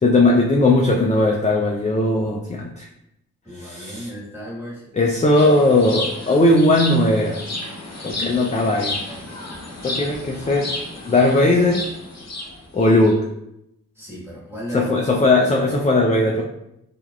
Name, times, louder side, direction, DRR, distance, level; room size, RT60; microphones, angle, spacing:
voice 1, 0.0-2.9 3.5-4.1 4.9-7.4 8.0-9.0 9.8-10.7 11.1-11.9 12.7-13.3 14.7-16.4, left 2 dB, 20° left, 0 dB, 0.3 m, -18 dB
voice 2, 3.4-4.8 8.1-8.4 14.0-15.2, equal, 5° right, -5 dB, 1.4 m, -35 dB
sound 1, 5.3-13.1, left 2 dB, 50° left, 0.8 m, -32 dB
3.3 x 2.3 x 2.3 m, 0.81 s
cardioid pair, 40°, 34 cm